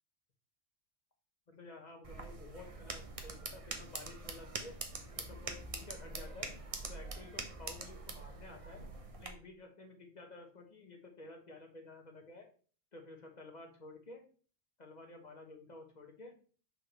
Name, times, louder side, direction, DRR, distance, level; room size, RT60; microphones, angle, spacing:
voice 1, 1.5-4.8 5.1-6.5 6.9-8.8 9.2-12.5 12.9-14.3 14.8-16.3, left 2 dB, 35° left, 2 dB, 1.4 m, -52 dB
sound 1, 2.0-9.3, right 3 dB, 30° right, 0.8 m, -44 dB
6.3 x 5.5 x 3.2 m, 0.41 s
omnidirectional pair, 1.2 m